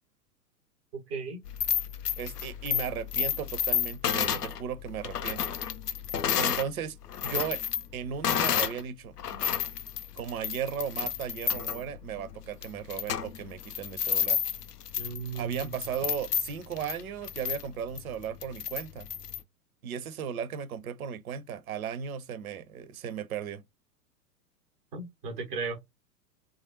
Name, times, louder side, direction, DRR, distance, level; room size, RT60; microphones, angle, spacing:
voice 1, 0.9-1.4 15.0-15.7 24.9-25.8, right 4 dB, 10° right, 0.3 m, -36 dB
sound 1, 1.5-6.7 7.0-8.8 9.2-19.4, left 9 dB, 85° left, 0.5 m, -31 dB
voice 2, 2.2-5.6 6.4-7.0 7.2-7.6 7.9-9.1 10.2-14.4 15.3-19.1 19.8-23.6, right 8 dB, 65° right, 0.7 m, -36 dB
3.2 x 2.4 x 2.8 m
figure-of-eight pair, 100°, 46 cm